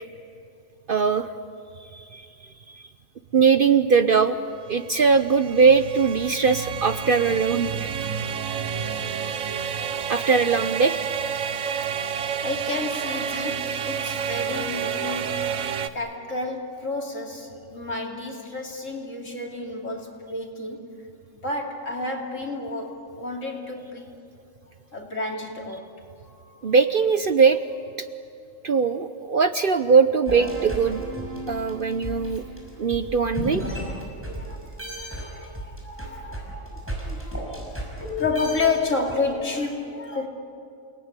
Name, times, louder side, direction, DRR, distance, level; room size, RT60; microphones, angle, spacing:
voice 1, 0.9-1.3 1.9-2.2 2.7-2.8 3.3-4.4 4.7-7.9 10.1-11.0 26.6-27.6 28.6-31.0 31.5-32.4 32.8-33.6, right 5 dB, 50° right, 10 dB, 0.8 m, -20 dB
sound 1, 4.5-15.9, right 7 dB, 75° right, 1.3 m, -30 dB
voice 2, 12.4-15.7 15.9-20.9 21.3-24.1 24.9-25.9 26.2-26.7 33.7-40.3, left 3 dB, 65° left, 1 dB, 3.3 m, -31 dB
sound 2, 30.3-34.5 34.8-39.1, right 1 dB, 10° right, 6.0 m, -33 dB
29.0 x 19.0 x 9.7 m, 2.4 s
omnidirectional pair, 1.4 m